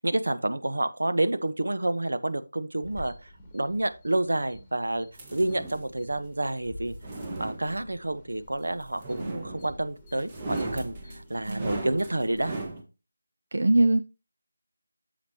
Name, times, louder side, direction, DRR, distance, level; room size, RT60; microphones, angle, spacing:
voice 1, 0.0-5.1 5.3-6.9 7.4-12.6, right 1 dB, 85° right, 1.1 m, -29 dB
sound 1, 2.8-12.7, left 1 dB, 5° left, 1.8 m, -49 dB
sound 2, 5.1-5.9 6.8-8.1 9.0-9.9 10.2-12.8, right 2 dB, 20° right, 1.4 m, -36 dB
voice 2, 13.5-14.0, right 2 dB, 65° right, 0.5 m, -22 dB
8.6 x 7.3 x 2.9 m
figure-of-eight pair, 170°, 0 cm